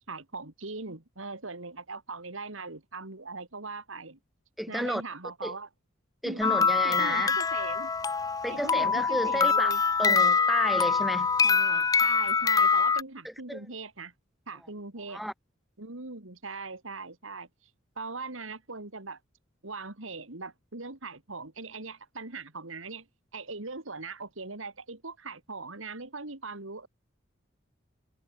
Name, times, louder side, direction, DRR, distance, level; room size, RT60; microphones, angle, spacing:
voice 1, 0.1-4.2 4.7-5.7 6.2-7.9 8.5-9.8 11.4-14.1 14.5-15.2 15.8-17.5 18.0-19.2 19.6-23.1 23.3-26.9, right 3 dB, 80° right, 2.9 m, -40 dB
voice 2, 4.6-5.0 5.4-5.5 6.2-7.3 8.4-9.7 10.0-11.3 13.2-13.6 15.1-15.3, equal, ahead, 1.0 m, -32 dB
sound 1, 6.4-13.0, left 5 dB, 20° left, 0.3 m, -24 dB
head